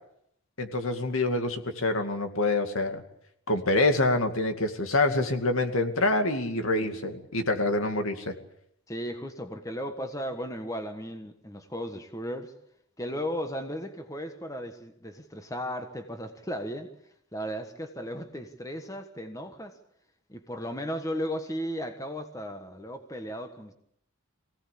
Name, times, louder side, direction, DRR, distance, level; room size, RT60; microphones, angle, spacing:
voice 1, 0.6-3.0 3.5-8.3, left 2 dB, 75° left, 6 dB, 2.4 m, -26 dB
voice 2, 6.6-7.0 8.9-12.5 13.0-16.9 17.3-19.8 20.3-23.7, equal, 15° left, 7 dB, 1.4 m, -35 dB
24.0 x 17.5 x 8.5 m, 0.74 s
head